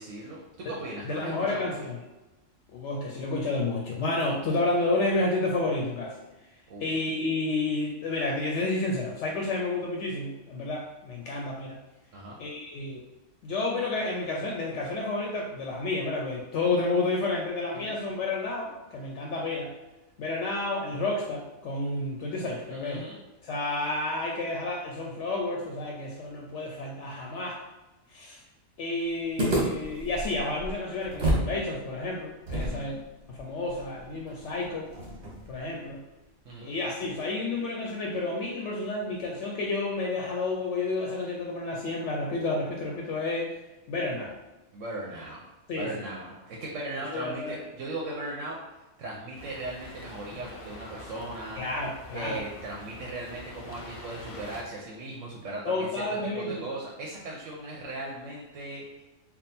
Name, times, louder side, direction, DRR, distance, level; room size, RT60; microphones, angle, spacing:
voice 1, 0.0-1.8 6.7-6.9 12.1-12.4 17.7-18.0 22.7-23.2 32.6-33.0 36.4-36.7 44.7-45.4 45.7-48.6 49.0-51.6 52.1-55.9 56.2-59.0, right 2 dB, 80° right, -3 dB, 1.0 m, -38 dB
voice 2, 1.1-2.0 2.7-6.2 6.8-11.8 12.4-13.1 13.4-19.7 20.2-23.0 23.4-27.6 28.1-28.4 28.8-33.0 33.3-34.9 35.5-36.0 36.6-43.5 43.9-44.4 45.7-45.9 47.1-47.6 51.6-52.4 55.7-56.7, left 2 dB, 70° left, -1 dB, 0.9 m, -30 dB
sound 1, 29.4-31.5 31.8-31.9 32.5-35.6, right 1 dB, 60° right, 1.4 m, -31 dB
sound 2, 49.3-54.6, left 2 dB, 40° left, 0.5 m, -45 dB
3.6 x 2.2 x 4.1 m, 1.1 s
omnidirectional pair, 1.3 m